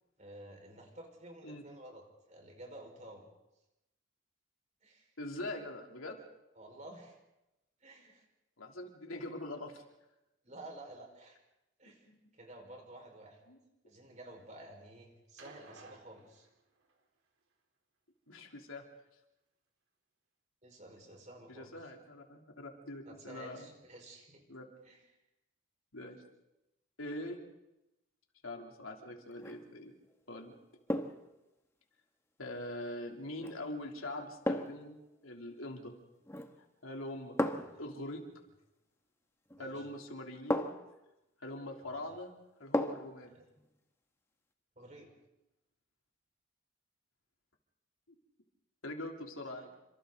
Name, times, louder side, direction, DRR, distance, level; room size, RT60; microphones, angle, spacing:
voice 1, 0.2-3.3 4.8-5.1 6.6-7.2 7.8-8.3 10.4-11.4 11.8-12.1 12.3-13.4 13.8-16.5 20.6-21.7 23.1-24.4 24.8-25.1 37.5-37.7 39.6-39.8 41.9-42.0 43.3-43.4 44.8-45.1 49.5-49.7, right 1 dB, 35° right, 2 dB, 5.0 m, -52 dB
voice 2, 5.2-6.2 8.6-9.8 12.1-12.2 13.5-13.6 18.3-18.8 21.5-23.7 24.5-24.7 25.9-26.2 27.0-27.4 28.4-29.9 30.3-30.5 32.4-35.0 35.2-35.9 36.8-37.5 37.8-38.2 39.6-40.7 41.4-42.3 42.6-43.4 48.1-48.2 48.8-49.7, left 1 dB, 85° left, 1 dB, 3.3 m, -43 dB
sound 1, 15.4-17.0 18.3-18.4, right 3 dB, 90° right, 3.9 m, -56 dB
sound 2, 29.3-29.7 30.9-31.3 33.4-33.6 34.5-34.9 36.3-36.6 37.4-37.8 39.5-39.6 40.5-41.0 42.7-43.2 43.6-43.7, left 1 dB, 10° left, 1.1 m, -34 dB
29.5 x 26.0 x 4.0 m, 0.93 s
head